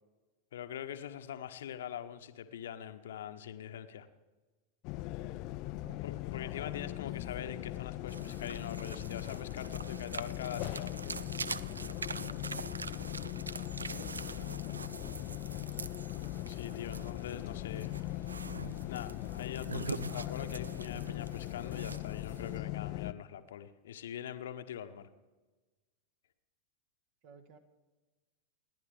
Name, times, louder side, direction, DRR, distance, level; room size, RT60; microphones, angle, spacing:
voice 1, 0.5-4.1 6.0-10.9 16.5-17.9 18.9-25.1, left 9 dB, 60° left, 9 dB, 1.0 m, -43 dB
sound 1, 4.8-23.1, left 16 dB, 40° left, 0.4 m, -40 dB
sound 2, 8.1-22.6, right 4 dB, 75° right, 0.4 m, -44 dB
voice 2, 12.2-12.7 14.3-15.5 27.2-27.6, right 6 dB, 45° right, 8 dB, 1.6 m, -56 dB
28.5 x 10.5 x 3.5 m, 1.2 s
figure-of-eight pair, 90°, 0 cm